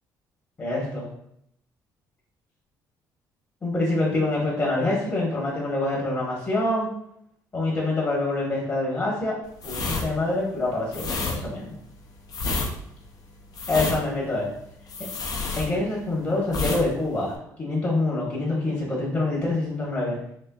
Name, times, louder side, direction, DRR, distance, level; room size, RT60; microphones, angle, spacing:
voice 1, 0.6-1.1 3.6-6.9 7.5-9.4 9.6-11.8 13.7-14.5 15.6-20.2, left 2 dB, 30° left, -5 dB, 1.2 m, -26 dB
sound 1, 9.6-16.1 16.5-16.9 17.1-17.4, left 3 dB, 55° left, 0.6 m, -29 dB
4.3 x 3.0 x 2.3 m, 0.75 s
cardioid pair, 95°, 8 cm